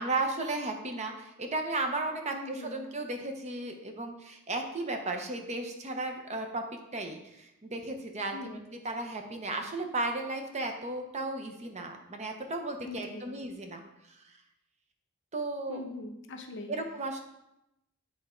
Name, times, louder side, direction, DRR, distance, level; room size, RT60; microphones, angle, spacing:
voice 1, 0.0-6.6 6.9-8.6 8.8-13.8 15.3-15.8 16.7-17.2, right 2 dB, 30° right, 4 dB, 0.8 m, -34 dB
voice 2, 2.3-2.8 8.3-8.6 12.8-13.3 15.7-16.7, left 2 dB, 60° left, 4 dB, 0.8 m, -41 dB
8.9 x 3.6 x 4.4 m, 0.86 s
head